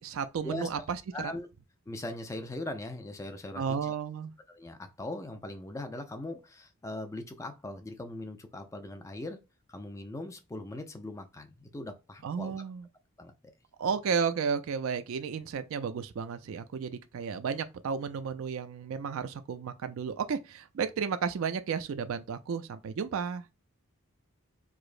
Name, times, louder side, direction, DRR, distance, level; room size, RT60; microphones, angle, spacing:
voice 1, 0.0-1.3 3.6-4.3 12.2-12.9 13.8-23.4, right 6 dB, 65° right, 0.3 m, -33 dB
voice 2, 1.1-1.5 1.9-3.9 4.5-9.4 9.7-12.6 13.2-13.3, left 1 dB, 15° left, 0.3 m, -40 dB
4.8 x 2.0 x 2.4 m
head